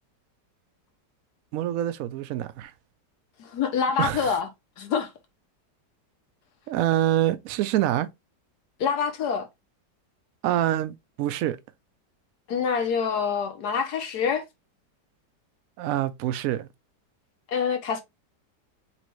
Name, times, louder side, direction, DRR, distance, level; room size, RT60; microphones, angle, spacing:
voice 1, 1.5-2.7 4.0-4.4 6.7-8.1 10.4-11.6 15.8-16.7, right 12 dB, 70° right, 0.9 m, -26 dB
voice 2, 3.5-4.5 4.8-5.1 8.8-9.5 12.5-14.4 17.5-18.0, left 6 dB, 70° left, 1.3 m, -26 dB
4.3 x 3.4 x 3.0 m
omnidirectional pair, 1.9 m